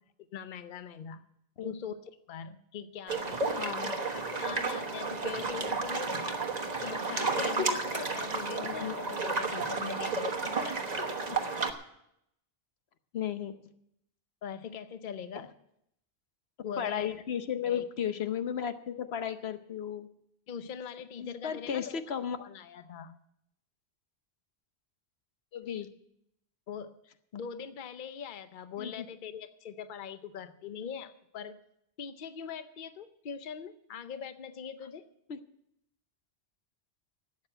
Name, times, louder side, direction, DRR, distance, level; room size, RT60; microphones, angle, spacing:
voice 1, 0.2-1.2 1.6-1.9 2.3-6.4 6.8-10.3 14.4-15.5 16.6-17.1 17.6-17.8 20.5-22.0 22.4-23.2 26.7-31.6 32.0-35.0, left 7 dB, 55° left, 11 dB, 0.8 m, -42 dB
sound 1, 3.1-11.7, right 3 dB, 40° right, 1.3 m, -32 dB
voice 2, 3.6-3.9 8.5-9.0 10.6-10.7 11.3-11.4 13.1-13.5 16.8-20.1 21.2-22.4 25.5-25.9 28.8-29.1 35.3-35.4, left 8 dB, 85° left, 10 dB, 1.1 m, -34 dB
12.5 x 8.5 x 8.8 m, 0.77 s
omnidirectional pair, 1.0 m